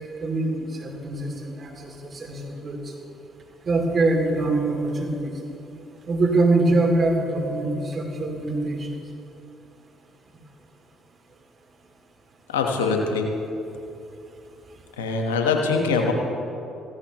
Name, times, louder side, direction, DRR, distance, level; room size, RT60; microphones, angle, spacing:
voice 1, 0.0-2.8 3.6-5.3 6.1-8.9, right 2 dB, 45° right, 1 dB, 2.6 m, -24 dB
voice 2, 12.5-13.3 15.0-16.1, left 4 dB, 90° left, 2 dB, 1.3 m, -23 dB
17.0 x 15.0 x 3.1 m, 2.8 s
hypercardioid pair, 55°, 0 cm